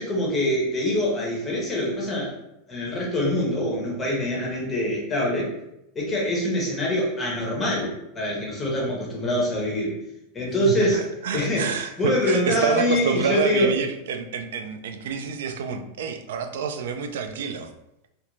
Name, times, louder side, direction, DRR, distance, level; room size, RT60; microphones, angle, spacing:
voice 1, 0.0-2.3 2.7-5.5 5.9-10.0 10.3-11.1 11.3-13.7, left 1 dB, 15° left, -3 dB, 0.7 m, -24 dB
voice 2, 10.6-17.7, right 6 dB, 85° right, 8 dB, 0.3 m, -28 dB
2.5 x 2.1 x 3.0 m, 0.84 s
supercardioid pair, 155°, 0 cm